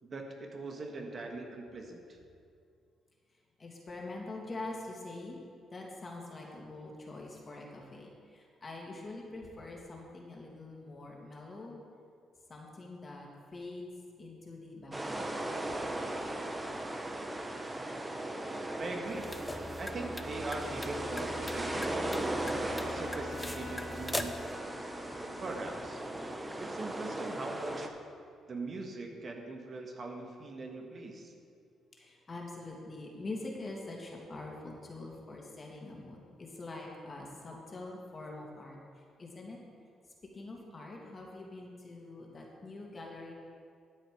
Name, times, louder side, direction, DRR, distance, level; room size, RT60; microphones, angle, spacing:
voice 1, 0.0-2.2 18.8-19.3 19.8-22.2 22.8-24.3 25.4-26.0 26.6-27.9 28.5-31.3, right 2 dB, 45° right, 2 dB, 1.5 m, -41 dB
voice 2, 3.6-5.4 5.7-11.8 12.5-13.9 14.2-15.3 32.0-39.6 40.3-43.3, left 2 dB, 35° left, -1 dB, 2.4 m, -44 dB
sound 1, 14.9-27.9, right 1 dB, 15° right, 1.0 m, -37 dB
sound 2, 19.1-24.5, left 1 dB, 10° left, 0.7 m, -41 dB
Bowed string instrument, 20.7-26.0, left 2 dB, 75° left, 2.4 m, -50 dB
12.5 x 8.3 x 5.0 m, 2.3 s
cardioid pair, 90°, 0 cm